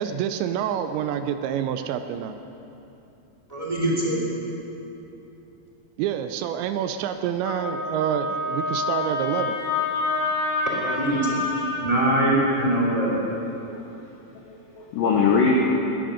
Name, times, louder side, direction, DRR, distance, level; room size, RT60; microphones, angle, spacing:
voice 1, 0.0-2.4 6.0-9.6, right 9 dB, 80° right, 9 dB, 2.8 m, -27 dB
voice 2, 3.5-4.2 10.7-11.4 11.8-13.2, right 1 dB, 10° right, -6 dB, 1.7 m, -23 dB
Wind instrument woodwind instrument, 7.4-11.8, left 3 dB, 55° left, 3.3 m, -27 dB
voice 3, 11.3-11.8 12.1-12.2 12.7-13.9 14.3-15.5, left 5 dB, 75° left, -1 dB, 2.0 m, -25 dB
18.5 x 10.5 x 6.5 m, 3.0 s
omnidirectional pair, 5.3 m